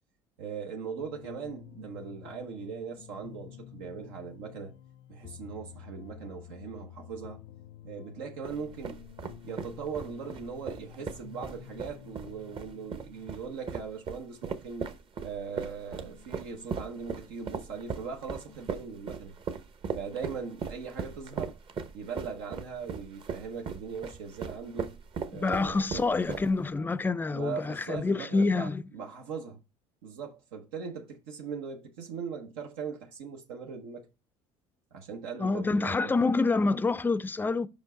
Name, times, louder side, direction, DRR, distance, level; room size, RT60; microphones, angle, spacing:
voice 1, 0.4-4.7 5.1-7.4 7.8-9.0 9.4-14.9 15.2-19.3 19.9-21.6 21.9-25.0 25.3-26.1 27.3-29.6 30.0-34.1 34.9-36.1, right 6 dB, 90° right, 1.0 m, -40 dB
sound 1, 1.0-13.8 15.5-18.6, left 11 dB, 65° left, 0.5 m, -51 dB
sound 2, 8.4-26.7, right 5 dB, 40° right, 0.9 m, -38 dB
voice 2, 25.4-28.8 35.4-37.7, left 3 dB, 15° left, 0.4 m, -27 dB
5.3 x 5.2 x 3.8 m
supercardioid pair, 100°, 13 cm